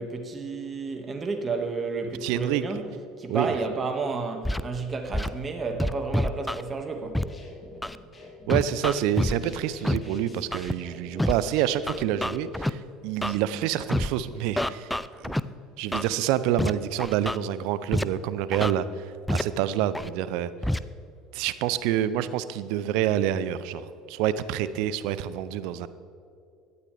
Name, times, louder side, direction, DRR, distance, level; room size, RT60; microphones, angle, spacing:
voice 1, 0.0-2.9 3.2-7.2 15.1-15.3, right 4 dB, 30° right, 5 dB, 1.9 m, -31 dB
voice 2, 2.2-2.6 3.3-3.5 8.5-14.9 15.2-15.4 15.8-20.5 21.3-25.9, right 11 dB, 65° right, 15 dB, 0.6 m, -27 dB
Scratching (performance technique), 4.4-4.6 5.1-5.3 5.8-6.6 7.1-7.2 7.8-8.0 8.5-9.3 9.8-10.0 10.5-10.7 11.2-11.3 11.9-12.7 13.2-13.4 13.9-14.1 14.6-15.4 15.9-16.1 16.6-16.7 17.0-17.4 17.9-18.0 18.5-18.7 19.3-19.4 19.9-20.1 20.6-20.8, left 1 dB, 5° left, 0.5 m, -26 dB
sound 1, 7.0-12.5, left 2 dB, 25° left, 2.9 m, -47 dB
17.5 x 12.5 x 3.5 m, 2.5 s
hypercardioid pair, 70°, 0 cm